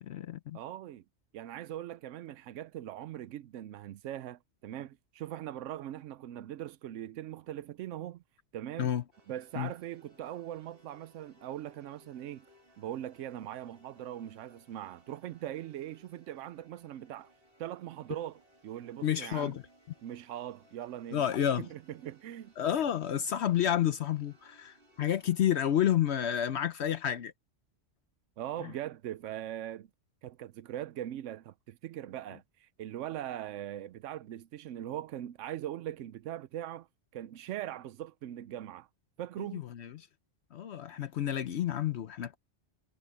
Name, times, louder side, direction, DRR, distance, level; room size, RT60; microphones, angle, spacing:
voice 1, 0.0-0.6 8.8-9.0 9.6-9.7 19.0-19.6 21.1-21.7 22.6-27.3 28.6-28.7 39.5-40.1 40.5-42.4, left 10 dB, 65° left, 0.9 m, -30 dB
voice 2, 0.5-1.0 1.3-8.2 8.5-8.9 9.3-12.5 12.8-17.3 17.6-19.5 20.0-21.2 21.6-22.5 28.4-29.9 30.2-36.9 37.1-38.9 39.2-39.7, right 12 dB, 90° right, 0.9 m, -41 dB
sound 1, 9.1-26.0, equal, 50° right, 2.7 m, -64 dB
omnidirectional pair, 1.2 m